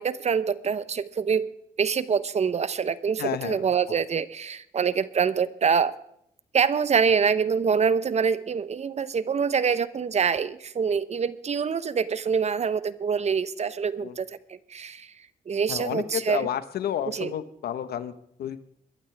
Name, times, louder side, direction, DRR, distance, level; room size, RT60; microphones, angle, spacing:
voice 1, 0.0-1.5 1.8-5.9 6.5-15.1 15.5-16.5 17.1-17.3, right 6 dB, 45° right, 16 dB, 0.8 m, -25 dB
voice 2, 3.2-4.0 14.0-14.1 15.7-18.6, left 10 dB, 80° left, 12 dB, 1.1 m, -31 dB
22.5 x 12.0 x 3.4 m, 0.73 s
cardioid pair, 90°, 16 cm